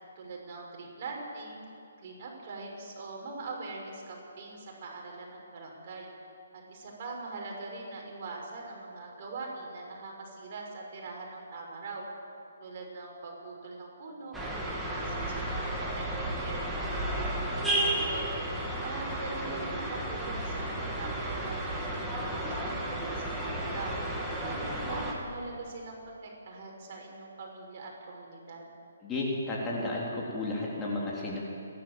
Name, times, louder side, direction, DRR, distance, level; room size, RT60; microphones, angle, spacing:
voice 1, 0.2-1.7 2.0-6.1 6.5-12.1 12.6-18.2 18.8-24.0 24.4-28.7, right 3 dB, 40° right, -1 dB, 6.1 m, -42 dB
sound 1, 14.3-25.1, right 1 dB, 5° right, 2.9 m, -33 dB
voice 2, 29.0-31.4, left 2 dB, 15° left, -4 dB, 3.5 m, -32 dB
29.5 x 12.0 x 7.7 m, 2.7 s
figure-of-eight pair, 145°, 0 cm